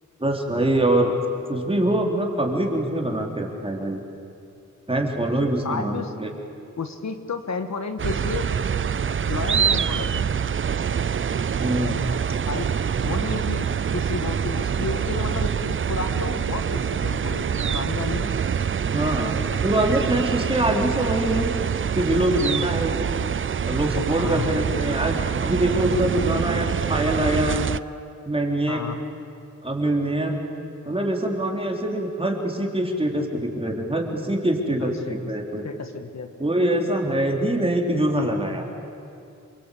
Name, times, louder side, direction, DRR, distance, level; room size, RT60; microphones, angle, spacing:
voice 1, 0.2-1.2 1.5-4.0 4.9-6.3 11.6-12.0 18.9-21.5 21.8-23.0 23.7-27.6 28.3-28.8 29.6-30.4 30.9-35.6 36.4-38.7, right 1 dB, 20° right, 1 dB, 3.9 m, -24 dB
voice 2, 5.6-6.1 6.8-8.5 9.3-10.2 12.5-12.7 13.0-18.3 24.2-24.6 28.7-29.0 34.8-35.2 35.6-36.3, left 4 dB, 60° left, 7 dB, 1.8 m, -32 dB
sound 1, 8.0-27.8, right 7 dB, 40° right, 0.5 m, -25 dB
27.5 x 24.0 x 8.6 m, 2.6 s
wide cardioid pair, 95°, 30 cm